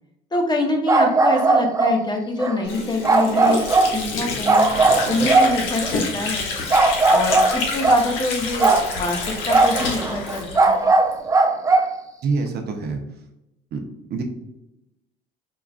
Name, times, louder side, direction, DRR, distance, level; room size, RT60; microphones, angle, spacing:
voice 1, 0.3-3.6 3.9-4.8 5.1-6.5 7.1-10.9, left 2 dB, 20° left, 2 dB, 0.7 m, -25 dB
sound 1, 0.9-2.0 2.4-2.6 3.0-4.0 4.5-6.0 6.7-8.1 8.6-8.9 9.5-11.9, right 3 dB, 15° right, 0.4 m, -18 dB
Water / Sink (filling or washing), 2.6-11.2, left 3 dB, 75° left, 0.8 m, -28 dB
voice 2, 12.2-13.0 13.7-13.8 14.1-14.2, right 4 dB, 55° right, 3 dB, 0.6 m, -25 dB
4.7 x 2.3 x 2.4 m, 0.90 s
supercardioid pair, 90°, 20 cm